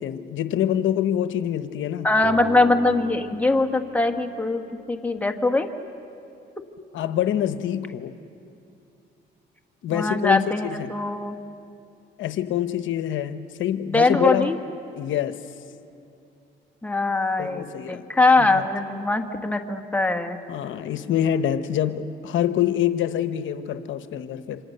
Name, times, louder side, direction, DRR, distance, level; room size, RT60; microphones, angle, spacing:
voice 1, 0.0-2.1 6.9-8.1 9.8-10.9 12.2-14.5 15.0-15.3 17.4-18.0 18.4-18.6 20.5-24.6, left 10 dB, 75° left, 10 dB, 0.9 m, -25 dB
voice 2, 2.0-4.6 4.9-5.7 9.9-11.3 13.9-14.6 16.8-20.4, left 2 dB, 10° left, 5 dB, 1.6 m, -22 dB
Bass guitar, 2.2-6.3, left 4 dB, 35° left, 3.2 m, -41 dB
28.0 x 26.0 x 6.7 m, 2.7 s
cardioid pair, 90°, 20 cm